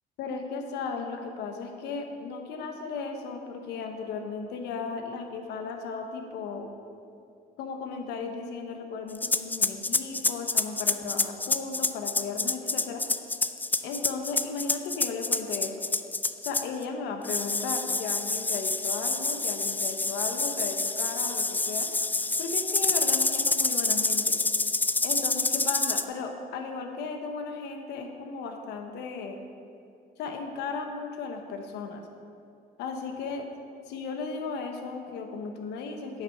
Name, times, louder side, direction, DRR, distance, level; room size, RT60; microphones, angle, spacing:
voice 1, 0.2-6.7 7.6-13.0 13.8-15.8 16.4-21.9 22.4-24.3 25.0-29.4 30.2-32.0 32.8-33.5 33.9-36.2, left 4 dB, 85° left, 4 dB, 1.1 m, -35 dB
sound 1, 9.2-16.8 17.2-26.0, left 3 dB, 10° left, 0.3 m, -27 dB
9.4 x 5.9 x 5.8 m, 2.5 s
cardioid pair, 110°, 17 cm